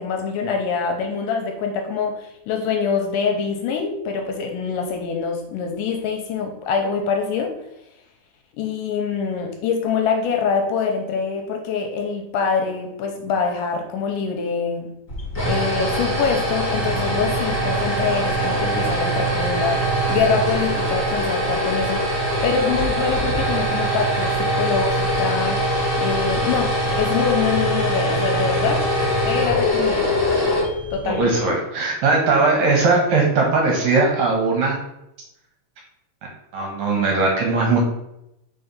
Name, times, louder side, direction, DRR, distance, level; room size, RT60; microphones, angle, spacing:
voice 1, 0.0-7.6 8.6-14.9 15.4-28.8 29.2-30.1 30.9-31.3, left 5 dB, 80° left, 3 dB, 2.1 m, -25 dB
sound 1, 15.1-31.3, equal, 30° left, 1.6 m, -22 dB
voice 2, 31.0-34.8 36.5-37.8, right 3 dB, 70° right, 0 dB, 1.9 m, -19 dB
4.5 x 4.1 x 5.2 m, 0.84 s
omnidirectional pair, 4.1 m